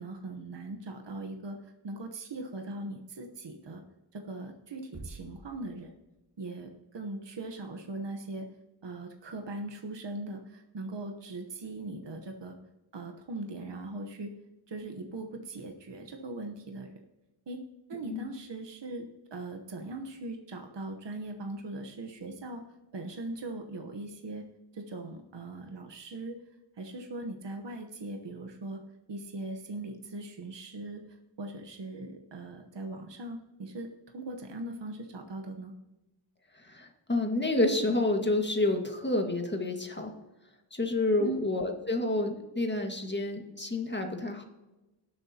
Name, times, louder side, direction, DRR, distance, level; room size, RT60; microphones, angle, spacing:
voice 1, 0.0-3.8 4.1-5.9 6.4-8.5 8.8-12.5 12.9-14.3 14.7-16.9 17.5-17.6 17.9-22.6 22.9-24.4 24.7-26.3 26.8-28.8 29.1-33.9 34.1-35.7 41.2-41.4, right 2 dB, 60° right, 3 dB, 1.1 m, -40 dB
sound 1, 4.9-6.6, right 2 dB, 35° right, 4.2 m, -48 dB
voice 2, 36.6-40.1 40.7-44.4, left 2 dB, 20° left, 3 dB, 1.8 m, -29 dB
18.5 x 8.0 x 2.9 m, 1.0 s
wide cardioid pair, 70°, 49 cm